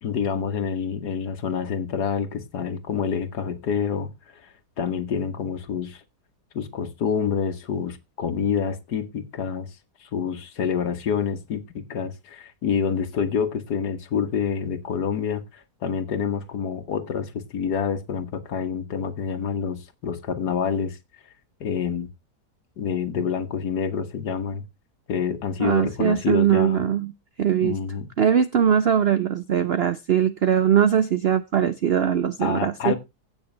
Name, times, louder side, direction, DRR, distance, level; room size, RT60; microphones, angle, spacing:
voice 1, 0.0-6.0 6.5-9.8 10.0-21.0 21.6-22.1 22.8-24.6 25.1-26.8 27.6-28.1 32.4-33.0, left 7 dB, 70° left, 1.8 m, -27 dB
voice 2, 25.6-27.1 27.4-27.8 28.2-32.9, right 8 dB, 70° right, 0.6 m, -21 dB
16.5 x 6.0 x 3.2 m
omnidirectional pair, 1.8 m